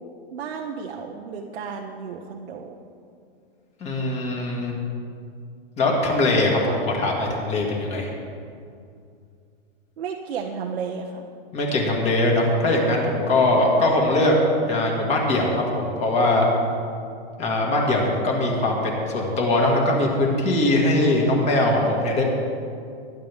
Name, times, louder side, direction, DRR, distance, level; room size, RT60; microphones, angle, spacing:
voice 1, 0.3-2.8 10.0-11.3, right 6 dB, 85° right, 0 dB, 1.3 m, -33 dB
voice 2, 3.8-4.7 5.8-8.1 11.5-14.4 14.6-16.5 17.4-22.2, left 2 dB, 20° left, -1 dB, 2.2 m, -21 dB
21.5 x 10.5 x 3.6 m, 2.4 s
supercardioid pair, 165°, 31 cm